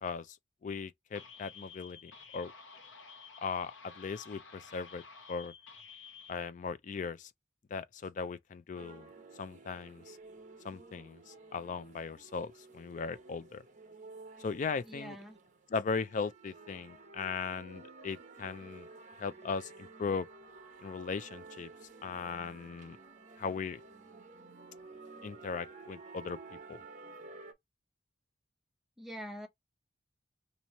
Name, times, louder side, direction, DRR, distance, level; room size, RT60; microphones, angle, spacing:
voice 1, 0.0-0.4 0.6-2.5 3.4-5.0 5.3-5.5 6.3-7.3 7.7-9.1 9.4-10.2 10.6-13.6 14.4-15.2 15.7-18.9 19.2-20.3 20.8-21.7 22.0-23.0 23.4-23.8 25.2-26.4 26.7-26.8, left 5 dB, 40° left, 0.3 m, -38 dB
sound 1, 1.1-6.3, left 5 dB, 80° left, 0.9 m, -52 dB
sound 2, 8.7-27.5, right 3 dB, 40° right, 0.8 m, -52 dB
voice 2, 14.8-15.4 29.0-29.5, equal, ahead, 0.7 m, -44 dB
3.0 x 2.7 x 4.1 m
head